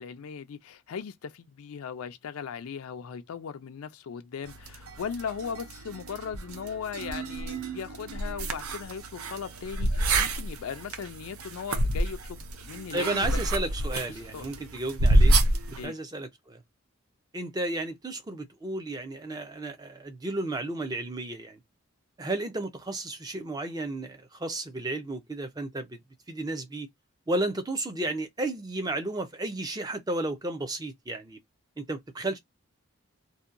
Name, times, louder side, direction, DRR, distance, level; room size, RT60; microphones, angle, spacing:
voice 1, 0.0-13.4 13.9-14.0 14.3-14.5 15.8-16.0, left 6 dB, 85° left, 0.4 m, -38 dB
sound 1, 4.5-15.8, right 1 dB, 85° right, 0.5 m, -28 dB
voice 2, 12.9-15.4 15.8-16.6 17.3-21.6 22.2-26.0 26.3-26.9 27.3-31.4 31.8-32.4, right 2 dB, 20° right, 0.4 m, -33 dB
2.7 x 2.2 x 2.4 m
head